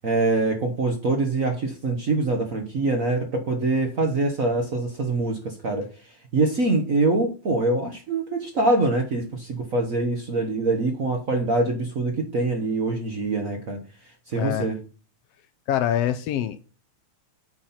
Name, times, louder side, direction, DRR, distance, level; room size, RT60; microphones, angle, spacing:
voice 1, 0.0-5.9 6.3-13.8 14.3-14.7, right 2 dB, 65° right, 0.8 m, -24 dB
voice 2, 14.3-14.7 15.7-16.6, left 11 dB, 80° left, 1.4 m, -25 dB
9.0 x 4.3 x 5.7 m
omnidirectional pair, 3.3 m